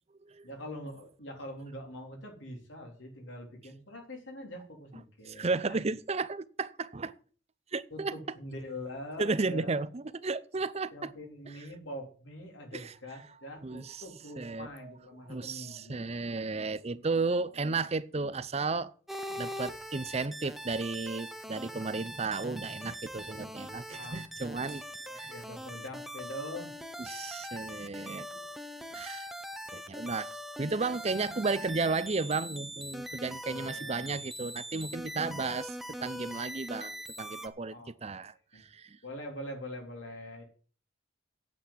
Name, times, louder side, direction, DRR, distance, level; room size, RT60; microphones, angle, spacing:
voice 1, 0.4-5.8 7.9-9.9 10.9-16.1 23.9-24.2 25.1-26.7 33.4-34.2 37.7-38.6 39.0-40.4, equal, 85° left, 3.7 m, -44 dB
voice 2, 5.3-7.1 7.7-8.1 9.2-11.1 12.7-12.9 13.6-14.0 14.4-14.7 15.3-18.9 19.3-24.8 25.1-25.3 27.1-28.3 28.9-29.3 29.7-30.3 30.6-35.8 36.0-37.7 38.0-39.0, right 3 dB, 35° right, 0.6 m, -33 dB
sound 1, 19.1-37.5, equal, ahead, 0.8 m, -42 dB
8.5 x 8.4 x 7.5 m
head